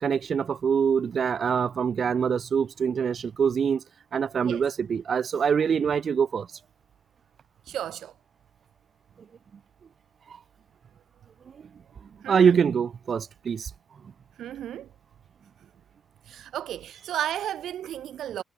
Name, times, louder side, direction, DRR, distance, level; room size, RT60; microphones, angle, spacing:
voice 1, 0.0-3.8 4.1-6.4 12.3-13.6, right 7 dB, 40° right, 7.6 m, -24 dB
voice 2, 7.7-8.1 12.2-12.6 14.4-14.9 16.3-18.4, right 11 dB, 70° right, 4.2 m, -33 dB
cardioid pair, 170°, 0 cm